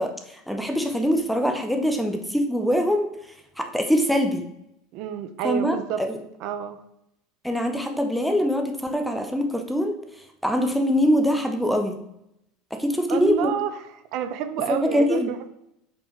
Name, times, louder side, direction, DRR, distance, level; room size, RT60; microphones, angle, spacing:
voice 1, 0.0-3.1 3.6-4.5 5.4-6.2 7.4-9.9 10.4-12.0 12.7-13.5 14.7-15.3, equal, ahead, 4 dB, 0.7 m, -23 dB
voice 2, 4.9-6.0 6.4-6.8 13.1-13.7 14.1-15.5, right 9 dB, 45° right, 10 dB, 0.6 m, -28 dB
7.3 x 5.4 x 4.5 m, 0.81 s
cardioid pair, 170°, 0 cm